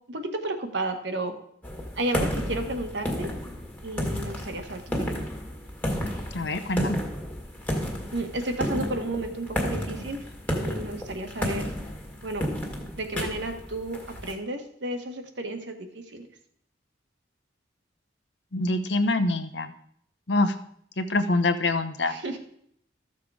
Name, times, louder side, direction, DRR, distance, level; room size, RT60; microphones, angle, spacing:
voice 1, 0.1-1.3 2.0-3.3 3.8-5.2 8.1-10.2 10.5-11.7 12.2-15.8 16.1-16.3 22.1-22.4, right 2 dB, 70° right, 5 dB, 1.6 m, -32 dB
sound 1, 1.6-14.3, equal, 10° left, 1.8 m, -32 dB
voice 2, 6.3-7.0 18.5-19.7 20.3-20.5 21.0-22.1, left 2 dB, 65° left, 9 dB, 1.0 m, -25 dB
14.0 x 6.8 x 4.9 m, 0.67 s
head